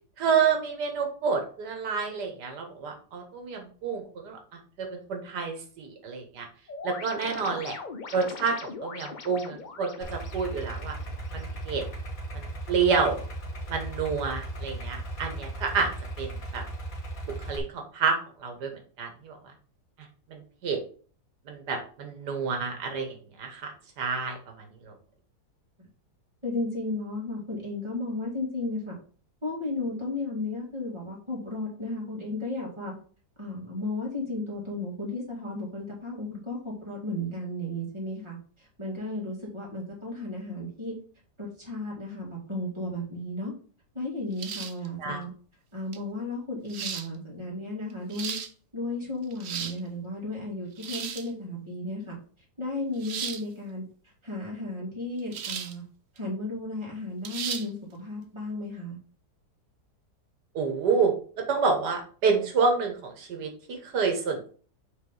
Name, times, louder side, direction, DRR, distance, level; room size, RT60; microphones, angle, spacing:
voice 1, 0.2-4.4 4.8-6.5 6.8-7.8 8.1-11.0 11.3-11.8 12.3-13.2 13.7-15.9 16.2-16.6 17.3-19.4 20.3-20.8 21.5-23.7 24.0-24.4 24.8-24.9 45.0-45.2 60.6-61.1 61.5-64.5, right 5 dB, 85° right, 3 dB, 1.8 m, -28 dB
sound 1, 6.7-11.7, left 4 dB, 40° left, 0.7 m, -42 dB
Idling, 10.0-17.6, right 2 dB, 60° left, 1.8 m, -37 dB
voice 2, 26.4-29.0 29.4-32.9 33.4-41.0 41.4-43.5 43.9-45.3 45.7-48.4 48.7-52.2 52.6-55.8 56.1-59.0, left 2 dB, 15° right, -4 dB, 2.4 m, -34 dB
sound 2, 44.4-44.9 45.9-46.0 46.7-47.1 47.9-48.5 49.2-49.8 50.8-51.3 53.0-53.4 55.3-55.8 56.2-56.3 57.2-57.7, right 8 dB, 60° right, 0.7 m, -35 dB
5.2 x 4.1 x 5.3 m, 0.42 s
omnidirectional pair, 1.7 m